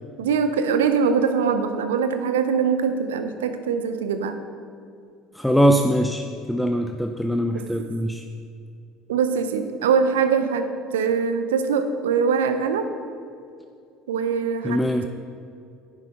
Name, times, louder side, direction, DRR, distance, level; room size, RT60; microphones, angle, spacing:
voice 1, 0.2-4.4 7.5-7.9 9.1-12.9 14.1-15.1, right 6 dB, 70° right, 9 dB, 0.5 m, -23 dB
voice 2, 5.3-8.2 14.6-15.1, equal, 5° left, 5 dB, 0.4 m, -22 dB
9.9 x 7.2 x 3.7 m, 2.4 s
figure-of-eight pair, 65°, 0 cm